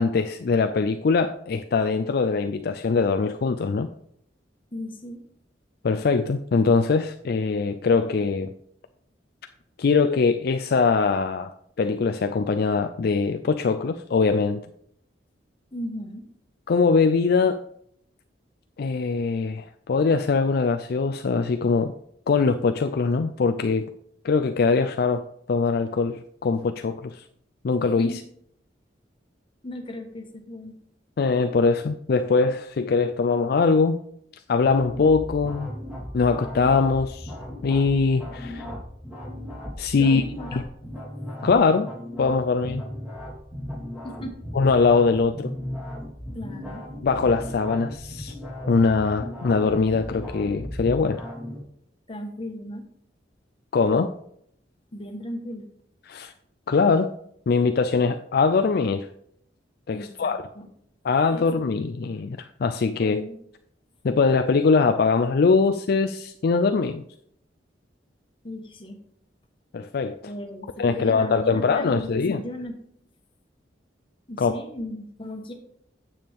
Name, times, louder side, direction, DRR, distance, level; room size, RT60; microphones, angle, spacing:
voice 1, 0.0-3.9 5.8-8.5 9.8-14.6 16.7-17.6 18.8-21.9 22.3-23.9 24.2-25.2 25.5-27.2 27.6-28.2 31.2-34.0 34.5-35.7 36.1-37.3 37.6-38.7 39.8-40.2 40.5-40.6 41.4-41.9 42.2-42.8 44.6-45.5 47.0-48.3 48.7-51.2 53.7-54.1 56.1-56.3 56.7-57.1 57.5-59.1 59.9-60.4 61.0-63.2 64.0-67.0 69.7-70.2 70.8-72.4 74.4-74.5, left 4 dB, 60° left, 7 dB, 0.4 m, -22 dB
voice 2, 4.7-5.2 15.7-16.3 28.0-28.2 29.6-30.8 40.0-40.6 44.0-44.5 46.3-46.9 52.1-52.9 54.9-55.7 59.9-60.7 61.3-61.7 63.0-63.4 68.4-69.0 70.2-72.8 74.3-75.5, left 1 dB, 30° left, 3 dB, 1.3 m, -36 dB
sound 1, 34.6-51.6, left 1 dB, 10° right, 2.8 m, -36 dB
9.1 x 7.1 x 3.5 m, 0.70 s
head